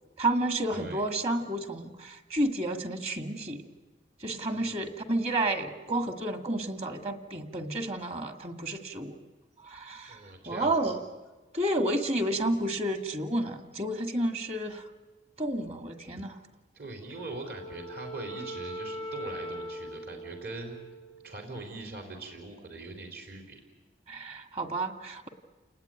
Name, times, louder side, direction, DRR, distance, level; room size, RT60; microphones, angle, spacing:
voice 1, 0.2-3.7 4.2-9.1 9.6-11.0 11.5-14.8 15.4-16.4 24.1-25.3, right 1 dB, 35° right, 5 dB, 1.9 m, -31 dB
voice 2, 0.7-1.1 4.5-4.9 10.1-10.9 16.7-20.8 21.2-23.6, right 3 dB, 60° right, 2 dB, 4.2 m, -42 dB
Wind instrument woodwind instrument, 17.0-21.5, equal, 85° right, 3.0 m, -41 dB
29.5 x 19.5 x 9.2 m, 1.3 s
head